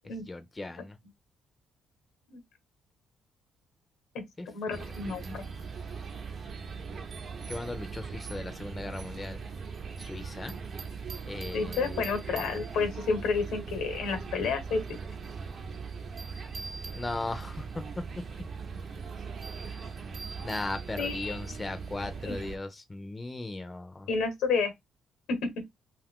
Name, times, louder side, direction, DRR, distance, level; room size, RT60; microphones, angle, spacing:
voice 1, 0.3-1.0 4.4-5.0 7.5-9.4 10.0-10.5 11.2-12.0 16.9-17.7 18.0-18.1 19.6-19.9 20.4-24.1, left 2 dB, 20° left, 0.5 m, -38 dB
voice 2, 4.5-5.4 11.5-14.8 21.0-21.4 22.2-22.4 24.1-24.7 25.3-25.4, left 4 dB, 85° left, 0.9 m, -30 dB
sound 1, 4.7-22.6, right 5 dB, 55° right, 0.7 m, -40 dB
2.6 x 2.4 x 3.5 m
cardioid pair, 90°, 0 cm